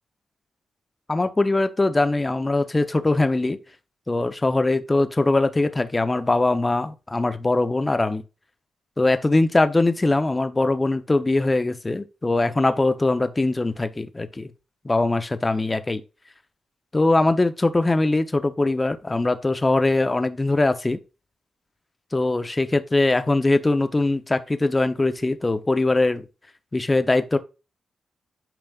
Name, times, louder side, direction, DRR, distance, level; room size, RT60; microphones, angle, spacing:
voice 1, 1.1-3.6 4.1-8.2 9.0-14.5 14.8-16.0 16.9-21.0 22.1-26.2 26.7-27.4, left 2 dB, 20° left, 0.8 m, -21 dB
9.1 x 5.2 x 2.4 m
cardioid pair, 105°, 0 cm